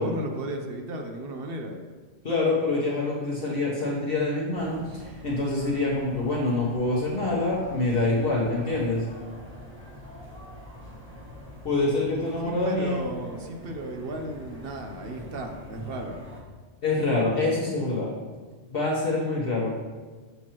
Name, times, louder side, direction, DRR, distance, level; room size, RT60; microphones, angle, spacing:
voice 1, 0.0-1.8 11.9-12.0 12.4-16.2, right 1 dB, 55° right, 4 dB, 0.8 m, -35 dB
voice 2, 2.2-9.0 11.6-13.0 16.8-18.1 18.7-19.7, left 2 dB, 50° left, -6 dB, 1.2 m, -26 dB
sound 1, 4.5-16.4, left 1 dB, 10° right, 1.2 m, -45 dB
6.8 x 6.1 x 2.9 m, 1.4 s
omnidirectional pair, 1.3 m